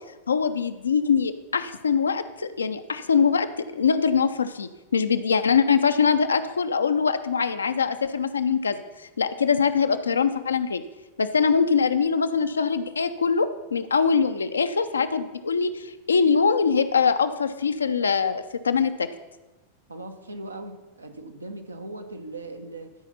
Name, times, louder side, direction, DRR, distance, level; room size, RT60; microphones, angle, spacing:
voice 1, 0.3-10.8 11.2-19.1, left 6 dB, 75° left, 10 dB, 0.5 m, -23 dB
voice 2, 19.9-22.9, right 2 dB, 80° right, 6 dB, 0.9 m, -39 dB
12.5 x 4.9 x 5.7 m, 1.1 s
figure-of-eight pair, 90°, 0 cm